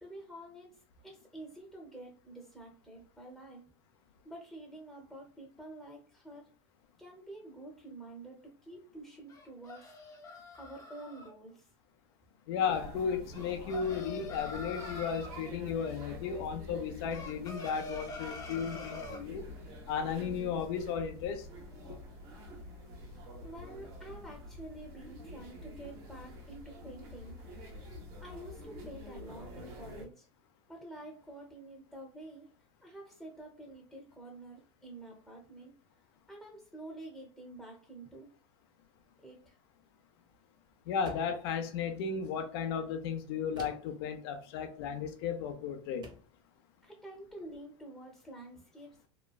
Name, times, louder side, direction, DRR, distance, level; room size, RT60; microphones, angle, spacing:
voice 1, 0.0-3.7 4.2-6.5 7.0-9.9 10.6-11.7 12.3-12.5 23.1-27.4 28.2-30.3 30.7-32.5 32.8-35.8 36.3-38.3 39.2-39.6 46.8-49.0, right 1 dB, ahead, 0.8 m, -49 dB
sound 1, 9.3-11.3 13.3-15.3 17.1-19.2, left 3 dB, 25° left, 0.7 m, -45 dB
voice 2, 12.5-19.4 19.9-21.5 21.9-22.0 40.9-46.0, left 6 dB, 65° left, 0.6 m, -34 dB
sound 2, 12.7-30.1, left 1 dB, 60° right, 1.1 m, -47 dB
sound 3, 41.0-41.5 43.6-44.0 45.3-45.5 46.0-46.4, right 1 dB, 30° right, 0.7 m, -49 dB
3.0 x 2.2 x 2.3 m
supercardioid pair, 110°, 14 cm